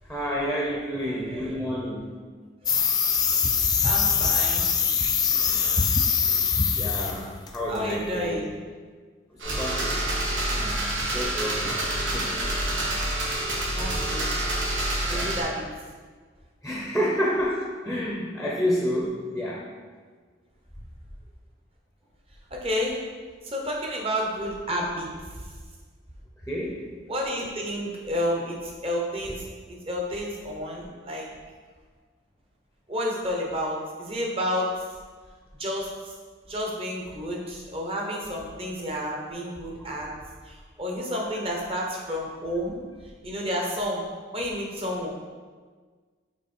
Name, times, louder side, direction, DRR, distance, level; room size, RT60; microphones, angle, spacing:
voice 1, 0.1-2.1 6.7-8.4 9.5-10.0 10.6-10.8 11.1-12.4 15.1-15.4 16.6-19.7 26.4-26.8 41.0-41.3, equal, ahead, -4 dB, 0.7 m, -29 dB
voice 2, 1.1-1.6 3.8-4.7 7.7-8.6 10.5-11.0 13.7-14.3 15.0-15.7 22.5-23.0 23.4-25.1 27.1-29.4 29.7-31.3 32.9-34.8 35.6-35.9 36.5-40.1 40.5-42.8 43.2-44.1 44.3-45.1, equal, 30° right, -1 dB, 1.0 m, -30 dB
sound 1, 2.7-7.2 7.5-7.8, left 6 dB, 20° left, 0.4 m, -23 dB
sound 2, 9.4-15.4, right 1 dB, 85° right, 1.6 m, -27 dB
6.1 x 4.3 x 4.4 m, 1.5 s
head